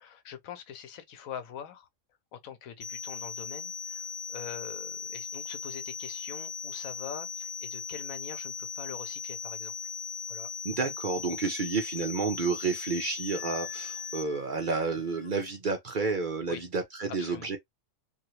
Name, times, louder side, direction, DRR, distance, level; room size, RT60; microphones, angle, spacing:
voice 1, 0.0-1.9 2.3-9.9 10.3-10.5 16.5-16.6 17.2-17.5, left 8 dB, 85° left, 1.1 m, -44 dB
sound 1, 2.8-14.2, left 6 dB, 70° left, 1.0 m, -38 dB
voice 2, 10.6-17.6, right 4 dB, 50° right, 0.6 m, -30 dB
Wind instrument woodwind instrument, 13.3-15.3, left 10 dB, 45° left, 0.6 m, -50 dB
2.8 x 2.7 x 3.0 m
omnidirectional pair, 1.4 m